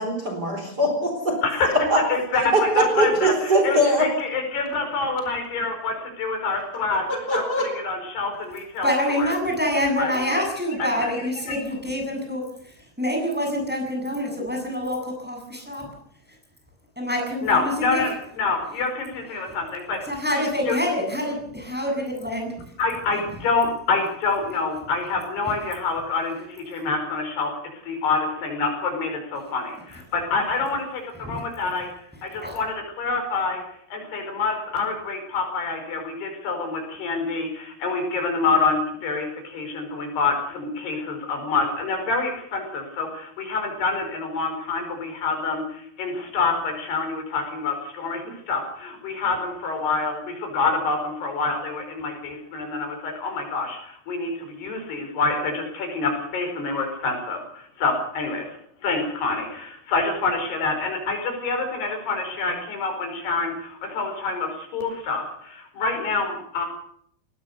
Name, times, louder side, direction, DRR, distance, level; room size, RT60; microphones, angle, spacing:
voice 1, 0.0-1.4 1.9-2.0 2.5-4.1 7.1-7.7, right 1 dB, 25° right, 3 dB, 4.3 m, -21 dB
voice 2, 1.4-1.7 2.1-9.4 10.0-10.4 10.8-11.6 17.4-20.0 20.7-20.8 22.8-27.5 27.8-29.8 30.1-31.9 32.2-33.6 33.9-58.6 58.8-66.7, left 4 dB, 80° left, 4 dB, 7.0 m, -27 dB
voice 3, 8.8-15.9 17.0-18.0 20.1-22.5 31.2-31.4 32.4-32.5, left 1 dB, ahead, 1 dB, 7.6 m, -26 dB
21.0 x 19.0 x 6.8 m, 0.65 s
omnidirectional pair, 4.6 m